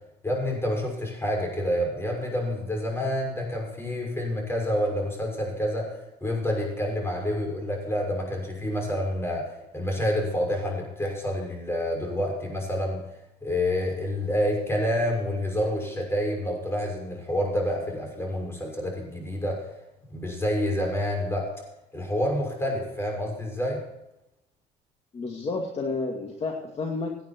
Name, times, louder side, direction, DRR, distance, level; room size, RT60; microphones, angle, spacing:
voice 1, 0.2-5.9 6.2-13.0 13.4-19.7 20.1-21.5 21.9-23.9, equal, 15° left, 1 dB, 6.4 m, -28 dB
voice 2, 25.1-27.2, left 3 dB, 35° left, 1 dB, 2.3 m, -30 dB
18.0 x 9.6 x 4.6 m, 0.89 s
cardioid pair, 110°, 17 cm